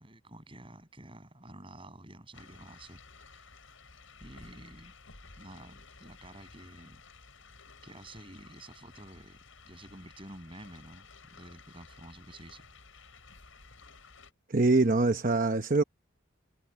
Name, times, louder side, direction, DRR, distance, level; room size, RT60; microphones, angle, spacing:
voice 1, 0.0-3.5 4.2-4.9 5.4-7.0 7.8-12.7, right 1 dB, 25° right, 7.1 m, -50 dB
sound 1, 2.3-14.3, left 4 dB, 75° left, 7.9 m, -54 dB
voice 2, 14.5-15.8, right 3 dB, 40° right, 0.9 m, -24 dB
head